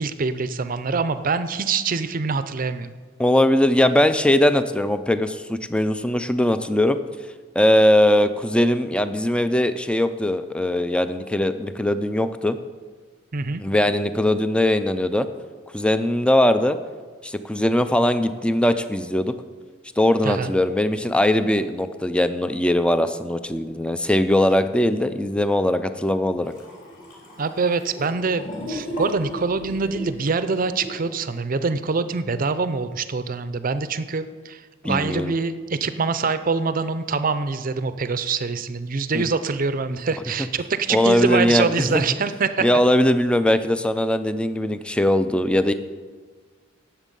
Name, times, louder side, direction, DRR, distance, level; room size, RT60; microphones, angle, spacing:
voice 1, 0.0-2.9 13.3-13.6 20.2-20.5 27.4-42.7, right 4 dB, 45° right, 12 dB, 0.6 m, -25 dB
voice 2, 3.2-7.0 7.6-12.6 13.6-15.3 15.7-16.8 17.2-19.3 20.0-26.5 34.8-35.3 39.1-39.3 40.9-42.0 42.6-45.7, left 1 dB, 5° left, 11 dB, 0.5 m, -20 dB
sound 1, 26.4-31.1, left 1 dB, 45° left, 3.7 m, -35 dB
17.5 x 7.3 x 5.4 m, 1.5 s
head